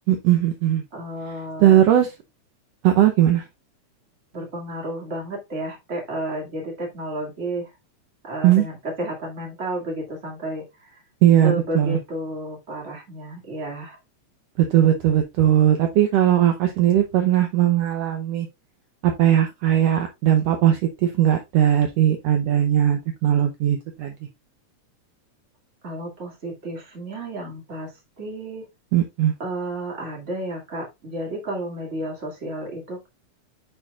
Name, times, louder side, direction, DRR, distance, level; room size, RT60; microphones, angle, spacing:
voice 1, 0.1-0.8 1.6-2.1 2.8-3.4 8.4-8.6 11.2-12.0 14.6-18.5 19.0-24.1 28.9-29.3, right 11 dB, 75° right, 5 dB, 1.6 m, -19 dB
voice 2, 0.9-1.8 4.3-7.7 8.2-11.0 11.4-14.0 25.8-28.6 29.4-33.1, right 1 dB, 25° right, 0 dB, 2.1 m, -32 dB
10.0 x 4.6 x 2.3 m, 0.22 s
omnidirectional pair, 3.5 m